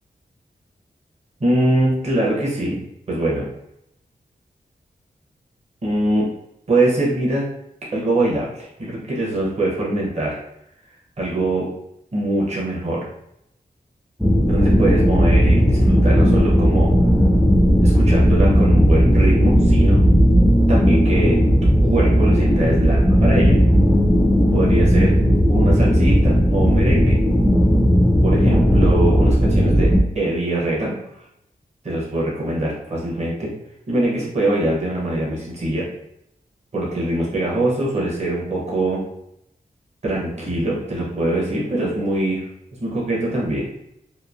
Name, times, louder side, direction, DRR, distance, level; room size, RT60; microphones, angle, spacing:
voice 1, 1.4-2.8 3.1-3.5 5.8-6.3 6.7-7.5 7.9-10.4 11.2-11.7 12.1-13.0 14.5-16.9 17.8-20.0 20.7-21.4 21.8-23.6 24.5-25.2 25.5-27.2 28.2-30.9 31.8-33.5 33.9-35.9 36.7-39.0 40.0-42.4 42.8-43.7, right 1 dB, 40° right, -5 dB, 0.9 m, -22 dB
sound 1, 14.2-30.0, equal, 5° left, 0.3 m, -15 dB
3.0 x 2.3 x 2.4 m, 0.79 s
wide cardioid pair, 70°, 17 cm